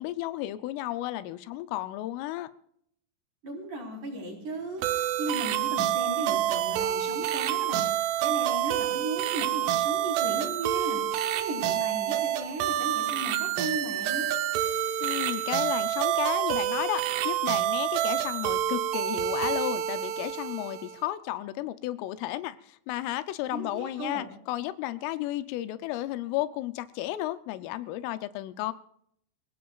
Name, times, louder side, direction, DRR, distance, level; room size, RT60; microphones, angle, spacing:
voice 1, 0.0-2.5 15.0-28.7, left 15 dB, 85° left, 3.3 m, -33 dB
voice 2, 3.4-7.8 8.2-14.3 23.5-24.3, right 2 dB, 40° right, 5.1 m, -36 dB
sound 1, 4.8-21.0, right 12 dB, 80° right, 3.4 m, -28 dB
27.5 x 17.5 x 2.4 m
omnidirectional pair, 5.7 m